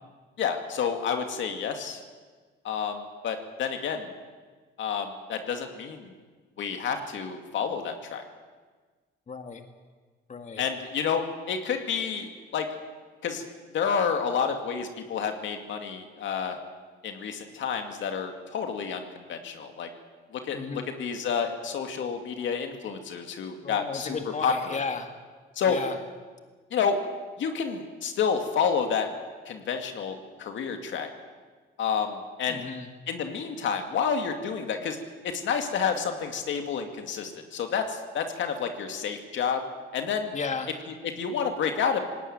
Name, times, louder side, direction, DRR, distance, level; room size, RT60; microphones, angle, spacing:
voice 1, 0.4-2.0 2.6-4.1 4.8-6.1 6.6-8.2 10.6-12.7 13.2-13.5 13.7-16.6 17.0-19.9 20.3-24.2 24.4-24.8 25.6-25.8 26.7-27.0 27.4-29.1 29.5-31.1 31.8-32.7 33.1-35.0 35.2-39.6 39.9-40.3 41.0-42.0, left 6 dB, 75° left, 5 dB, 2.4 m, -29 dB
voice 2, 9.3-9.6 10.3-10.6 20.5-20.9 23.6-25.1 25.7-26.0 32.5-32.9 40.3-40.7, left 5 dB, 35° left, 5 dB, 2.0 m, -34 dB
19.0 x 18.0 x 9.4 m, 1.4 s
cardioid pair, 90°, 20 cm